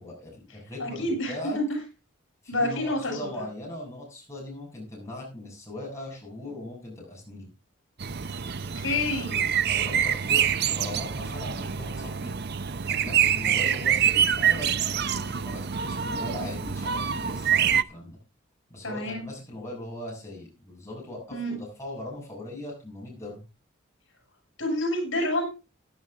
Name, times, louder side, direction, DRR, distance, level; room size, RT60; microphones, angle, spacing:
voice 1, 0.0-1.6 2.4-7.5 9.7-12.3 12.8-18.2 18.7-23.4, left 1 dB, 15° left, -3 dB, 7.6 m, -39 dB
voice 2, 0.8-1.6 2.5-3.3 8.8-9.4 18.8-19.2 21.3-21.5 24.6-25.5, left 1 dB, 75° left, 3 dB, 6.8 m, -28 dB
sound 1, 8.0-17.8, right 8 dB, 50° right, 0.6 m, -26 dB
15.5 x 11.0 x 3.6 m, 0.29 s
head